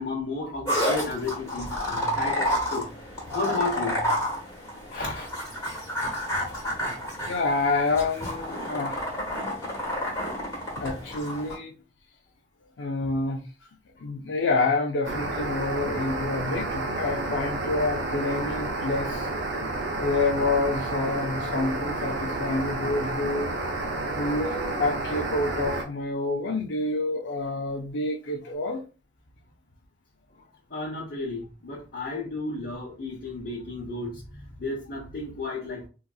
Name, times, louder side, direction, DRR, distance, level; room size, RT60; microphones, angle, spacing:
voice 1, 0.0-2.9 3.3-4.1 4.9-5.3 30.7-34.2 34.6-35.9, left 3 dB, 55° left, 1.0 m, -32 dB
sound 1, 0.7-11.6, equal, 15° left, 1.4 m, -30 dB
voice 2, 7.3-9.1 10.8-11.7 12.8-13.4 14.0-19.3 19.9-23.5 24.2-28.8, left 3 dB, 85° left, 0.5 m, -28 dB
sound 2, 15.0-25.8, right 2 dB, 75° right, 0.7 m, -30 dB
4.0 x 2.4 x 2.4 m
head